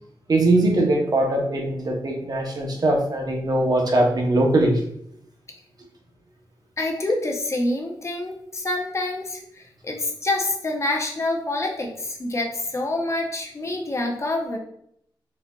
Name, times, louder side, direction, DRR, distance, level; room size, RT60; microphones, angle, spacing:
voice 1, 0.3-4.8, right 1 dB, 50° right, 1 dB, 0.7 m, -21 dB
voice 2, 6.8-14.6, left 2 dB, 35° left, 1 dB, 0.6 m, -27 dB
4.0 x 2.5 x 2.3 m, 0.71 s
wide cardioid pair, 85°, 9 cm